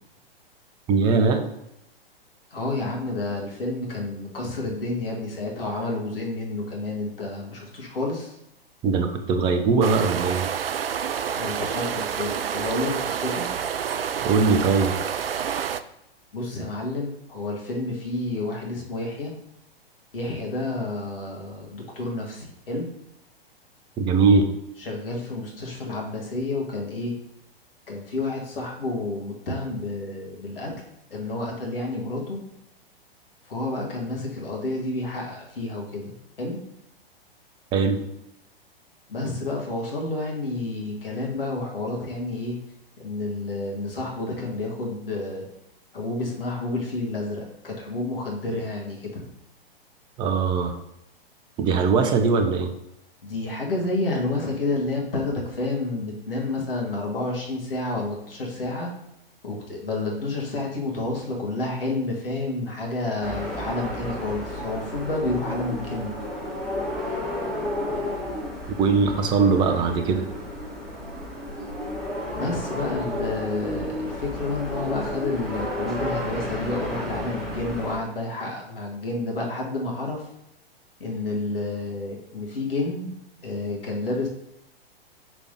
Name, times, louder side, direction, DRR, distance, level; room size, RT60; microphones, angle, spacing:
voice 1, 0.9-1.4 8.8-10.5 14.2-14.9 24.0-24.5 37.7-38.0 50.2-50.8 51.6-52.7 68.8-70.2, right 4 dB, 15° right, 6 dB, 0.4 m, -21 dB
voice 2, 2.5-8.4 11.3-13.4 16.3-19.3 20.1-22.9 24.8-27.2 27.9-30.7 31.1-32.4 33.5-36.6 39.1-42.6 43.0-45.5 45.9-49.3 53.2-58.9 59.4-66.2 72.3-80.2 81.0-83.1 83.4-84.3, left 2 dB, 65° left, -1 dB, 1.8 m, -30 dB
sound 1, 9.8-15.8, right 8 dB, 70° right, 0.5 m, -28 dB
sound 2, 63.2-78.0, left 1 dB, ahead, 1.5 m, -32 dB
6.0 x 3.3 x 5.4 m, 0.82 s
figure-of-eight pair, 105°, 30 cm